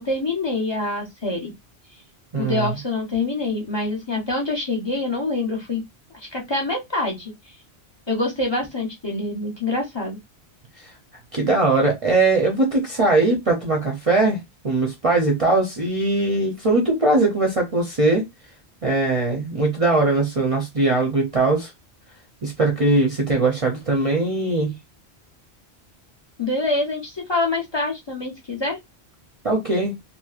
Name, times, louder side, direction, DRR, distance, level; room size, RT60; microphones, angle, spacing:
voice 1, 0.0-1.5 2.4-5.8 6.1-7.3 8.1-10.2 26.4-28.8, left 2 dB, 25° left, 0.9 m, -25 dB
voice 2, 2.3-2.7 10.8-10.9 11.3-14.4 14.6-18.2 18.8-21.7 22.4-24.8 29.4-29.9, right 2 dB, 40° right, 0.6 m, -20 dB
2.9 x 2.8 x 2.4 m
omnidirectional pair, 1.1 m